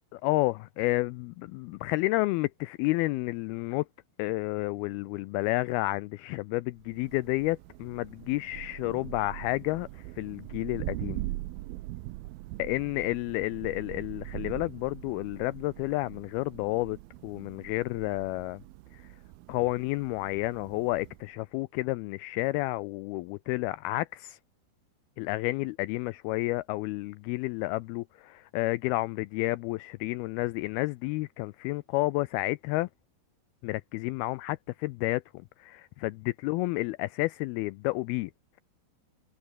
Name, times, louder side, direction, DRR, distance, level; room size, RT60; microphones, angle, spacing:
voice 1, 0.1-3.9 4.2-11.2 12.6-17.0 17.2-18.6 18.9-19.1 19.5-24.4 25.2-32.9 33.6-35.2 35.6-38.3, left 20 dB, 90° left, 2.2 m, -30 dB
Thunder, 6.8-21.4, right 18 dB, 80° right, 2.3 m, -42 dB
omnidirectional pair, 5.0 m